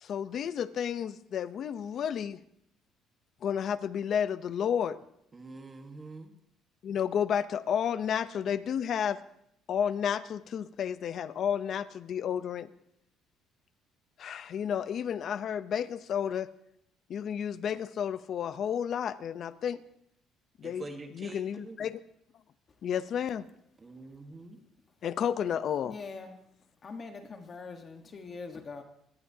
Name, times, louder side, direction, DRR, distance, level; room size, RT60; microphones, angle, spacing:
voice 1, 0.0-2.4 3.4-5.0 6.8-9.2 9.7-12.7 14.2-16.5 17.1-19.8 20.6-20.9 21.1-22.0 22.8-23.5 25.0-25.9, left 8 dB, 45° left, 13 dB, 0.7 m, -31 dB
voice 2, 5.3-6.3 20.6-21.8 23.8-24.6, right 2 dB, 20° right, 5 dB, 1.4 m, -45 dB
voice 3, 25.8-26.3 26.8-28.8, left 4 dB, 30° left, 5 dB, 1.3 m, -43 dB
24.0 x 18.0 x 2.8 m, 0.75 s
cardioid pair, 150°, 0 cm